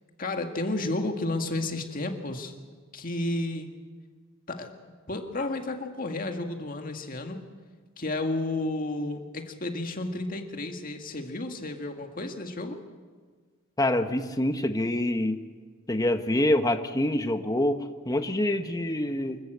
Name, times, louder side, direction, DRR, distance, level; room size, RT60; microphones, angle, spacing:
voice 1, 0.2-2.5 2.9-3.7 4.5-4.7 5.1-7.5 8.0-12.8, left 2 dB, 40° left, 4 dB, 1.9 m, -32 dB
voice 2, 13.8-15.4 15.9-19.4, left 1 dB, 15° left, 7 dB, 1.0 m, -26 dB
25.5 x 14.0 x 8.0 m, 1.5 s
head